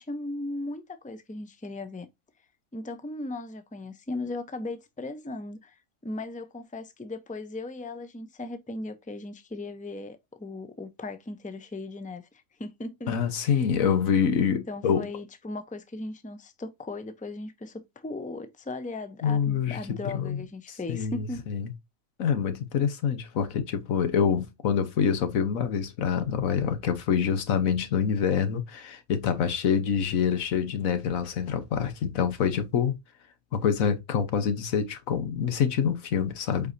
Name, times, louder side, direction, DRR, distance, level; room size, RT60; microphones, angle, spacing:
voice 1, 0.0-2.1 2.7-5.8 6.0-12.3 12.6-13.7 14.4-21.4, left 2 dB, 10° left, 0.5 m, -37 dB
voice 2, 13.1-15.1 19.2-20.4 20.7-21.7 22.2-32.9 33.5-36.7, left 7 dB, 75° left, 1.5 m, -26 dB
8.0 x 4.8 x 2.7 m
omnidirectional pair, 1.4 m